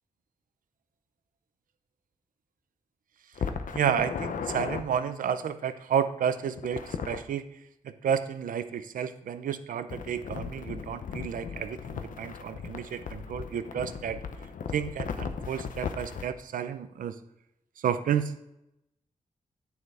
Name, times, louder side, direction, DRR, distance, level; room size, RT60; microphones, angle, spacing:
sound 1, 3.3-4.8 6.6-7.2 9.9-16.3, left 6 dB, 75° left, 0.8 m, -36 dB
voice 1, 3.7-14.2 14.7-17.2 17.8-18.3, right 8 dB, 85° right, 11 dB, 0.7 m, -31 dB
9.1 x 7.1 x 4.8 m, 0.86 s
cardioid pair, 60°, 14 cm